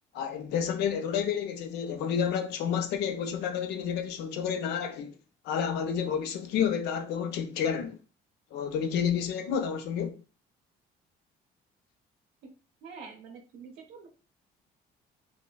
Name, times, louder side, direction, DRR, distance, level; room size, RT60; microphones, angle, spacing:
voice 1, 0.1-5.2 5.4-8.0 8.5-10.2, left 7 dB, 80° left, 0.5 m, -30 dB
voice 2, 12.8-14.1, right 5 dB, 85° right, 0.6 m, -46 dB
3.2 x 2.1 x 2.2 m
cardioid pair, 110°, 17 cm